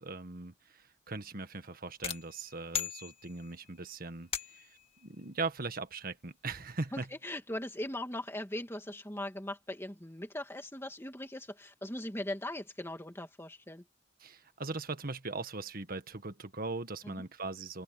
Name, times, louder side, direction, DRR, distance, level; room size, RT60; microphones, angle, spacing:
voice 1, 0.0-7.1 14.2-17.8, right 3 dB, 50° right, 1.7 m, -40 dB
sound 1, 2.0-3.7 4.3-4.9, left 8 dB, 30° left, 2.2 m, -38 dB
voice 2, 6.9-13.8 17.0-17.3, left 1 dB, 15° left, 2.3 m, -40 dB
open air
head